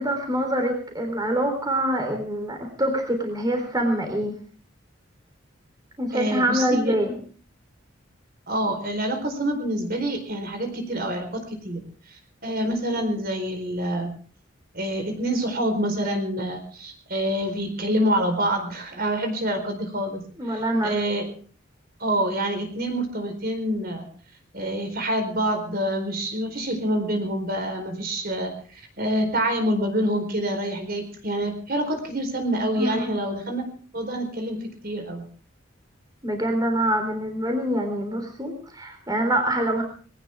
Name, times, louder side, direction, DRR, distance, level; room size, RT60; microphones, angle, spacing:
voice 1, 0.0-4.4 6.0-7.2 20.4-20.9 32.8-33.1 36.2-39.8, right 1 dB, 20° right, 4 dB, 3.8 m, -25 dB
voice 2, 6.1-6.9 8.5-11.8 12.1-14.1 14.7-20.2 20.5-21.3 22.0-24.1 24.5-33.6 33.9-34.6 34.8-35.2, right 1 dB, 50° right, 6 dB, 4.4 m, -27 dB
21.0 x 18.5 x 3.7 m, 0.42 s
head